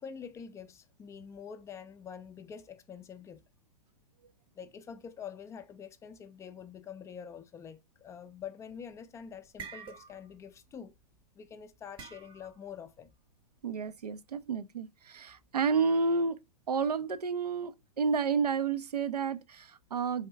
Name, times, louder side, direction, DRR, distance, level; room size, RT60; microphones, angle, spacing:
voice 1, 0.0-3.4 4.5-10.9 11.4-13.1, left 7 dB, 15° left, 0.4 m, -46 dB
sound 1, 8.7-9.0 9.3-10.4 10.7-11.0 12.0-12.7, right 6 dB, 25° right, 0.7 m, -47 dB
voice 2, 13.6-16.4 16.7-20.3, right 5 dB, 85° right, 0.5 m, -30 dB
4.4 x 3.5 x 3.2 m
hypercardioid pair, 110°, 20 cm